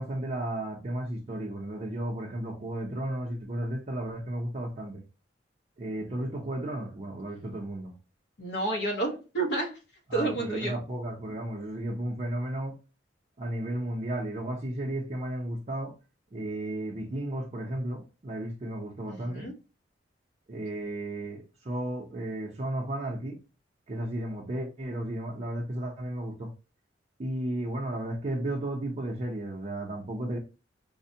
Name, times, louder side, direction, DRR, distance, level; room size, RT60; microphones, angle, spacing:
voice 1, 0.0-5.0 5.8-7.9 10.1-12.8 13.4-15.9 16.3-19.5 20.5-23.4 23.9-26.5 27.2-30.4, right 1 dB, 35° right, 0.5 m, -34 dB
voice 2, 8.4-9.7 10.1-10.7 19.3-19.5, right 2 dB, 65° left, 1.0 m, -30 dB
4.2 x 2.1 x 2.7 m
head